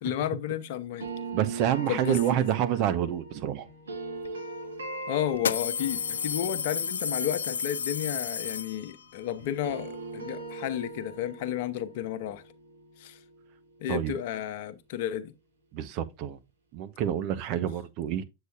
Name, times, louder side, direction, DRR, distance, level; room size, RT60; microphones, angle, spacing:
voice 1, 0.0-1.1 1.9-2.4 5.1-12.4 13.0-13.2 13.8-15.3, left 11 dB, 55° left, 0.9 m, -32 dB
sound 1, 1.0-9.1 9.4-14.3, right 3 dB, 85° right, 1.6 m, -41 dB
voice 2, 1.3-3.7 13.9-14.1 15.7-16.4 16.7-18.2, right 10 dB, 50° right, 0.9 m, -28 dB
sound 2, 4.2-4.3 5.3-9.1, left 7 dB, 80° left, 0.4 m, -32 dB
8.0 x 6.8 x 2.4 m
hypercardioid pair, 100°, 0 cm